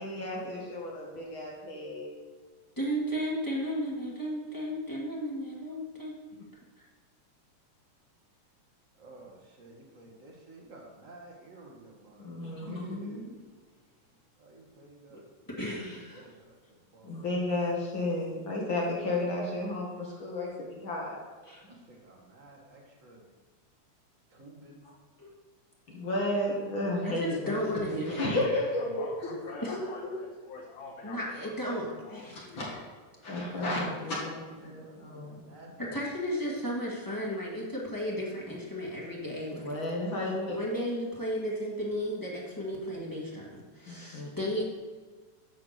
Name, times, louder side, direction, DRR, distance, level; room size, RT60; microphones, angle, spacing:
voice 1, 0.0-2.2 12.2-13.3 17.0-21.2 25.9-28.8 29.2-29.3 29.7-29.8 32.3-32.8 33.2-35.4 39.5-40.6 43.9-44.3, left 1 dB, 45° left, -3 dB, 2.1 m, -33 dB
voice 2, 2.8-6.1 15.5-16.2 21.5-21.6 25.2-25.3 27.0-28.4 29.6-29.8 31.0-32.5 35.8-39.8 40.5-44.6, equal, 15° left, -5 dB, 0.7 m, -34 dB
voice 3, 9.0-13.2 14.4-15.3 15.7-17.2 21.6-23.3 24.3-24.9 33.1-37.5 41.9-42.0 44.3-44.6, right 2 dB, 35° right, -2 dB, 1.4 m, -52 dB
voice 4, 28.3-31.3 31.7-32.7, left 3 dB, 75° left, -4 dB, 2.6 m, -45 dB
9.3 x 4.7 x 6.6 m, 1.5 s
omnidirectional pair, 3.6 m